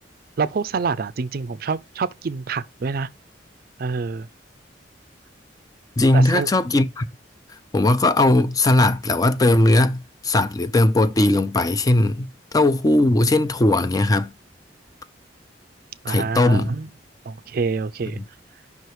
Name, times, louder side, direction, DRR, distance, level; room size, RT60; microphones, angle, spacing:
voice 1, 0.4-3.1 3.8-4.3 6.1-6.5 16.0-16.9 17.2-18.2, right 4 dB, 55° right, 0.4 m, -26 dB
voice 2, 6.0-7.1 7.7-14.3 16.1-16.7, left 2 dB, 20° left, 0.4 m, -18 dB
5.5 x 4.6 x 4.6 m
head